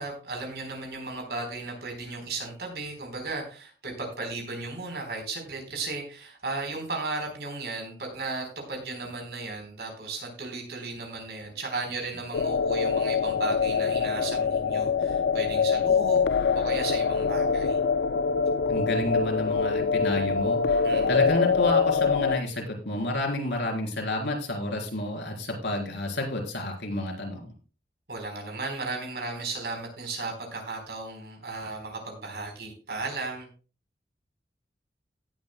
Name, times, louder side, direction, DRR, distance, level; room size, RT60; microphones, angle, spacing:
voice 1, 0.0-16.3 16.5-17.8 20.8-21.3 28.1-33.5, right 3 dB, 70° right, 3 dB, 4.0 m, -35 dB
sound 1, 12.3-22.4, left 5 dB, 70° left, 0.4 m, -24 dB
voice 2, 18.7-20.8 21.1-27.5, left 1 dB, 90° left, 2 dB, 3.6 m, -30 dB
17.5 x 8.8 x 2.2 m, 0.36 s
head